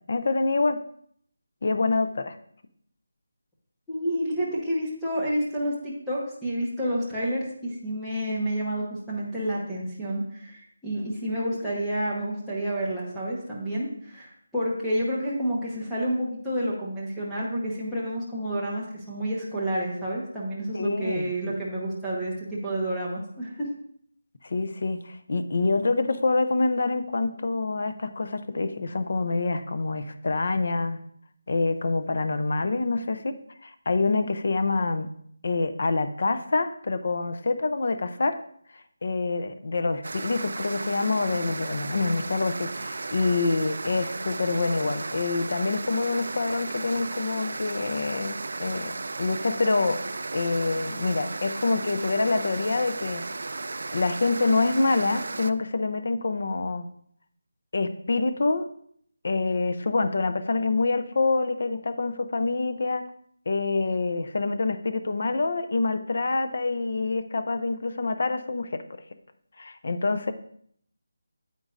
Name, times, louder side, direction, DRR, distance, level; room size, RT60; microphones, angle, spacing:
voice 1, 0.1-0.8 1.6-2.4 20.7-21.3 24.4-31.0 31.5-33.3 33.6-35.1 35.4-38.4 39.0-50.0 50.3-53.2 53.9-56.9 57.7-58.7 59.2-63.0 63.5-68.8 69.6-70.3, left 3 dB, 45° left, 10 dB, 0.5 m, -26 dB
voice 2, 3.9-23.7, right 1 dB, ahead, -10 dB, 1.1 m, -29 dB
sound 1, 40.0-55.5, right 3 dB, 55° right, 0.3 m, -35 dB
9.0 x 8.5 x 2.5 m, 0.64 s
figure-of-eight pair, 180°, 0 cm